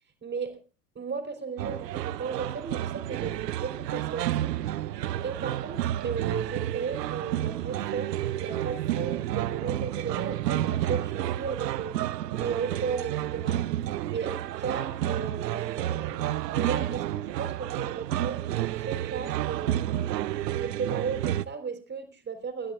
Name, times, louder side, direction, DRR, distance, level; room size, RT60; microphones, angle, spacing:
voice 1, 0.2-0.5 0.9-4.6 5.2-12.0 12.4-13.6 14.1-20.1 20.5-22.7, right 5 dB, 25° right, 5 dB, 3.3 m, -35 dB
sound 1, 1.6-21.4, right 13 dB, 75° right, 0.7 m, -30 dB
29.5 x 11.5 x 2.4 m, 0.34 s
figure-of-eight pair, 75°, 50 cm